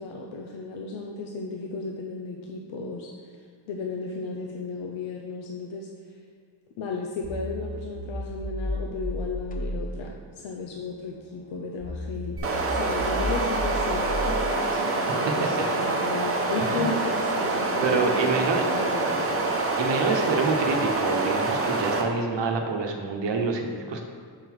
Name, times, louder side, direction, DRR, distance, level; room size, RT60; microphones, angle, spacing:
voice 1, 0.0-3.4 3.7-5.9 6.8-12.4 12.7-19.8, left 3 dB, 90° left, 0 dB, 0.7 m, -34 dB
sound 1, 7.2-14.5, equal, 20° left, 0.7 m, -34 dB
sound 2, 12.4-22.0, right 3 dB, 30° right, 0.8 m, -26 dB
voice 2, 16.6-16.9 17.8-18.7 19.8-24.0, right 4 dB, 70° right, 3 dB, 1.0 m, -27 dB
6.6 x 3.8 x 4.6 m, 2.2 s
cardioid pair, 90°, 45 cm